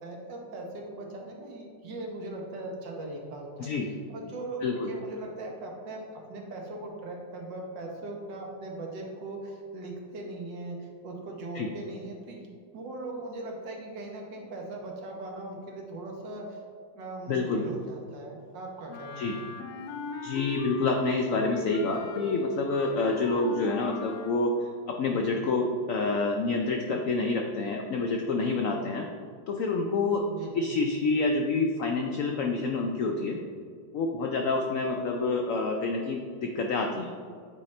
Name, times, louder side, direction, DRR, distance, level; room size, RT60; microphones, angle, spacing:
voice 1, 0.0-16.6 16.9-19.4 30.3-30.7, right 2 dB, 75° right, 0 dB, 1.7 m, -39 dB
voice 2, 17.3-17.6 19.2-19.4 20.2-24.5 25.0-29.1 29.5-30.2 30.5-33.4 33.9-37.1, left 3 dB, 90° left, 2 dB, 0.7 m, -28 dB
Wind instrument woodwind instrument, 18.9-21.1 21.4-24.5, left 4 dB, 70° left, 1.0 m, -38 dB
8.7 x 4.2 x 3.2 m, 2.2 s
omnidirectional pair, 2.0 m